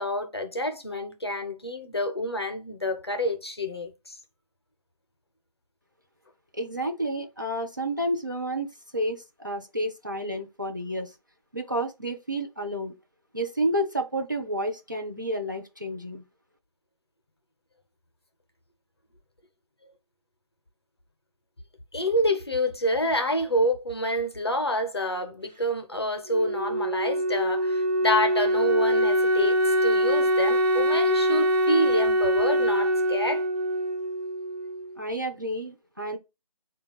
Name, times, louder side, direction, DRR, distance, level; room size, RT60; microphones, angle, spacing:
voice 1, 0.0-4.2 21.9-33.5, equal, 40° left, 0.6 m, -28 dB
voice 2, 6.5-11.1 11.5-12.9 13.3-16.2 35.0-36.2, right 1 dB, 30° right, 0.4 m, -30 dB
Wind instrument woodwind instrument, 26.3-35.0, equal, 90° right, 0.9 m, -24 dB
3.3 x 2.2 x 3.9 m
figure-of-eight pair, 160°, 20 cm